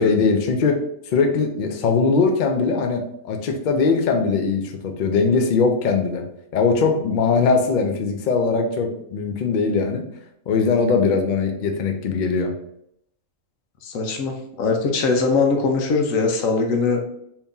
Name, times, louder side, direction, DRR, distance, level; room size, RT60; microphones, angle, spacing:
voice 1, 0.0-6.2 6.5-10.1 10.5-12.5, left 4 dB, 65° left, 3 dB, 0.4 m, -20 dB
voice 2, 13.8-17.0, left 4 dB, 80° left, 3 dB, 1.1 m, -21 dB
2.9 x 2.7 x 3.5 m, 0.76 s
omnidirectional pair, 1.4 m